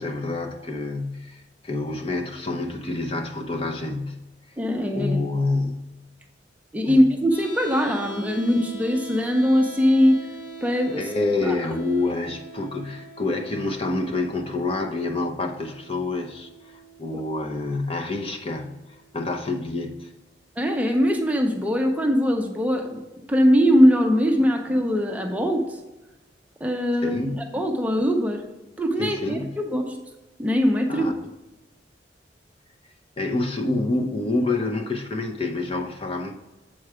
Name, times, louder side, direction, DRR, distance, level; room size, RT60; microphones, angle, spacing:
voice 1, 0.0-4.2 4.9-5.9 6.8-7.1 11.0-20.1 27.0-27.5 29.0-29.6 30.9-31.1 33.2-36.3, left 2 dB, 30° left, 5 dB, 0.6 m, -27 dB
voice 2, 4.6-5.2 6.7-10.2 10.6-11.1 11.4-11.6 20.6-23.0 23.3-25.8 26.6-28.4 28.8-30.0 30.4-31.1, equal, 10° right, 3 dB, 0.6 m, -21 dB
sound 1, 7.3-19.3, right 3 dB, 60° left, 1.9 m, -43 dB
7.6 x 4.6 x 4.8 m, 1.1 s
head